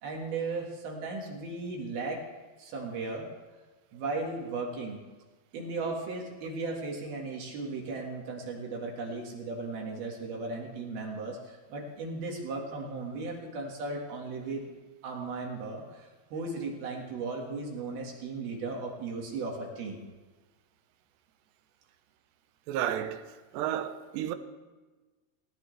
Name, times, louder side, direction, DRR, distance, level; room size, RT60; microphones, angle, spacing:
voice 1, 0.0-2.2 2.6-3.3 3.9-5.0 5.5-14.8 15.0-20.1, right 3 dB, 65° right, 3.6 m, -36 dB
voice 2, 22.7-23.2 23.5-24.4, right 11 dB, 85° right, 3.0 m, -31 dB
18.5 x 18.0 x 3.4 m
omnidirectional pair, 4.8 m